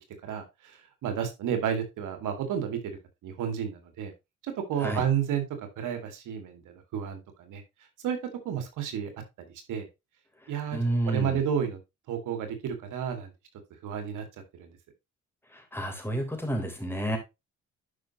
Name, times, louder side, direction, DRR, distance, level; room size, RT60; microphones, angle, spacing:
voice 1, 0.2-3.0 3.2-4.1 4.4-7.6 8.0-8.2 8.4-9.1 9.4-9.9 10.5-10.8 11.1-11.8 12.1-13.3 13.8-14.2 14.5-14.8, right 8 dB, 85° right, 6 dB, 2.1 m, -31 dB
voice 2, 10.4-11.4 15.5-17.2, right 1 dB, 5° left, 3 dB, 3.6 m, -30 dB
11.0 x 5.5 x 3.0 m, 0.23 s
cardioid pair, 90°, 30 cm